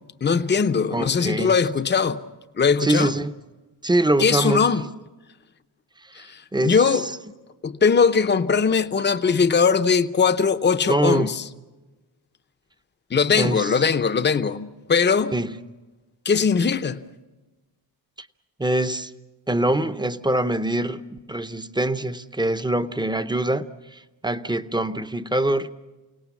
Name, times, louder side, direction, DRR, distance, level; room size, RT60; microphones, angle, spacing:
voice 1, 0.2-2.2 2.6-3.1 4.2-4.9 6.2-7.1 7.6-11.4 13.1-15.3 16.3-17.0, left 5 dB, 25° left, 0.6 m, -20 dB
voice 2, 0.9-1.5 2.8-3.3 3.8-4.7 6.1-7.1 10.9-11.3 13.3-13.7 15.3-15.6 18.6-19.1 19.5-25.7, right 1 dB, 10° right, 0.7 m, -24 dB
29.0 x 18.0 x 7.1 m
wide cardioid pair, 150°, 42 cm